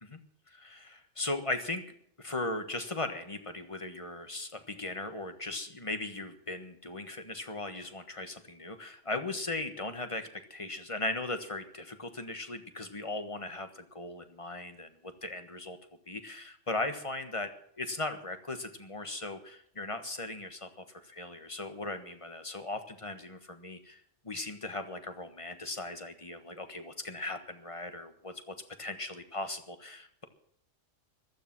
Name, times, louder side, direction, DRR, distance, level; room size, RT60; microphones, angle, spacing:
voice 1, 0.5-15.8 16.1-30.2, left 2 dB, 25° left, 8 dB, 1.5 m, -38 dB
15.0 x 13.0 x 6.1 m, 0.68 s
omnidirectional pair, 1.3 m